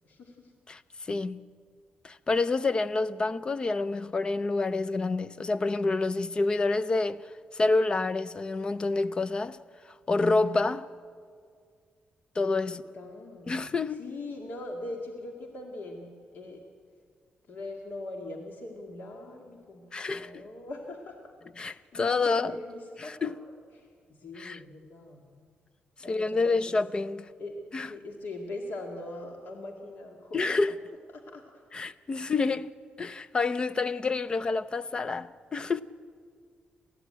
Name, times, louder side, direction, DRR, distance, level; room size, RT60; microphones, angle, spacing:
voice 1, 0.0-0.5 12.6-16.6 17.5-21.2 21.7-23.3 23.7-25.5 26.0-26.8 27.4-27.6 27.8-30.4 31.1-31.6 32.3-32.4, left 2 dB, 60° left, 2.1 m, -41 dB
voice 2, 0.7-1.5 2.0-7.3 7.5-9.6 10.1-10.9 12.4-12.8 13.5-14.1 19.9-20.4 21.6-22.6 23.1-23.4 24.4-24.6 26.1-27.3 27.7-27.9 30.3-30.7 31.7-32.7 33.0-35.8, left 3 dB, 25° left, 0.5 m, -28 dB
28.5 x 14.0 x 8.8 m
wide cardioid pair, 150°, 3 cm